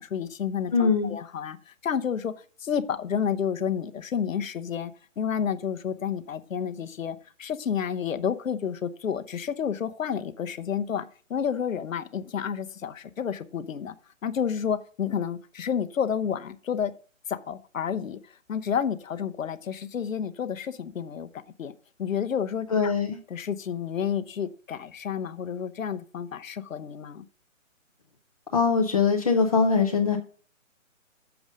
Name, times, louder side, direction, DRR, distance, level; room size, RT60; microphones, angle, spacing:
voice 1, 0.0-2.3 2.6-13.9 14.2-16.9 17.3-21.7 22.0-22.9 23.3-27.2, left 8 dB, 75° left, 0.9 m, -30 dB
voice 2, 0.7-1.1 22.7-23.2 28.5-30.2, left 5 dB, 25° left, 0.7 m, -22 dB
7.0 x 5.1 x 6.4 m
hypercardioid pair, 160°, 40 cm